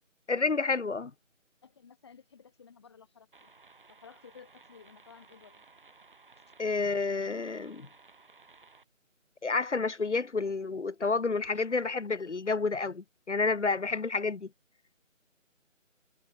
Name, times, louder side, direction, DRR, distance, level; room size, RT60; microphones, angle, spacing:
voice 1, 0.3-1.1 6.6-7.9 9.4-14.5, left 4 dB, 60° left, 1.2 m, -30 dB
voice 2, 1.6-3.5 3.9-5.6, left 6 dB, 20° left, 4.1 m, -55 dB
sound 1, 3.3-8.9, right 4 dB, 40° right, 7.3 m, -58 dB
figure-of-eight pair, 170°, 39 cm